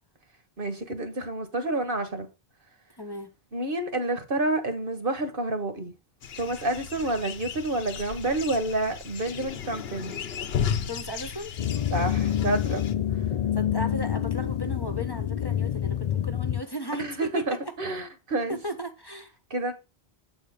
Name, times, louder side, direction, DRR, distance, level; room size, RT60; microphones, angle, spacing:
voice 1, 0.6-2.3 3.5-5.9 6.4-10.2 11.9-12.8 17.0-18.6 19.5-19.7, right 2 dB, 60° right, 1.6 m, -29 dB
voice 2, 3.0-3.3 10.8-11.5 13.5-17.6 18.5-19.3, equal, 25° left, 1.1 m, -35 dB
sound 1, 6.2-12.9, left 8 dB, 75° left, 1.0 m, -35 dB
sound 2, 11.6-16.6, left 10 dB, 50° left, 0.5 m, -27 dB
8.2 x 4.4 x 6.4 m
omnidirectional pair, 1.0 m